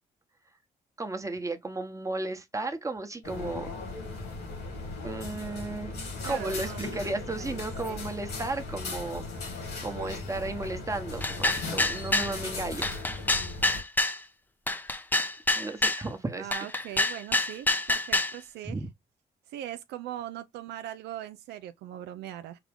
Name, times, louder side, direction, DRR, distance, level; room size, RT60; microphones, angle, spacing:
voice 1, 1.0-3.7 5.0-9.2 9.8-12.9 15.5-16.5 18.6-18.9, right 2 dB, 20° right, 1.0 m, -34 dB
sound 1, 3.2-13.8, left 3 dB, 90° left, 2.4 m, -38 dB
voice 2, 6.2-8.0 16.4-18.8 19.5-22.6, right 12 dB, 85° right, 0.4 m, -40 dB
sound 2, 11.2-12.3 12.8-14.2 14.7-16.0 16.5-18.4, left 2 dB, 10° left, 0.6 m, -26 dB
4.8 x 2.2 x 3.4 m
supercardioid pair, 60°, 17 cm